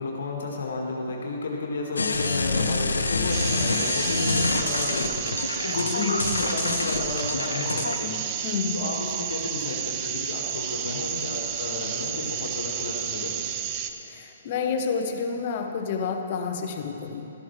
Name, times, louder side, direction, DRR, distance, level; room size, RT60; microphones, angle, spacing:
voice 1, 0.0-8.2 8.7-13.5, left 3 dB, 65° left, -1 dB, 1.8 m, -32 dB
sound 1, 2.0-8.0, left 3 dB, 80° left, 0.7 m, -27 dB
sound 2, 3.3-13.9, right 9 dB, 35° right, 0.6 m, -31 dB
voice 2, 8.4-8.9 14.1-17.3, left 5 dB, 45° left, 5 dB, 1.0 m, -29 dB
13.0 x 12.0 x 3.2 m, 3.0 s
figure-of-eight pair, 130°, 0 cm